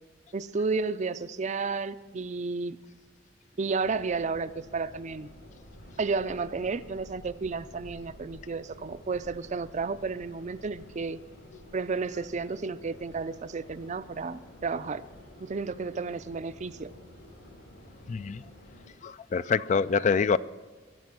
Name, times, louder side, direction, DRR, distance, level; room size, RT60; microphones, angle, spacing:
voice 1, 0.3-2.8 3.6-5.3 6.0-11.2 11.7-15.0 15.4-16.9, right 4 dB, 40° right, 14 dB, 0.4 m, -32 dB
Subway metro underground, 3.8-18.8, left 1 dB, 80° left, 5.8 m, -51 dB
voice 2, 18.1-18.4 19.0-20.4, left 5 dB, 40° left, 15 dB, 0.3 m, -25 dB
21.5 x 7.8 x 6.1 m, 1.5 s
head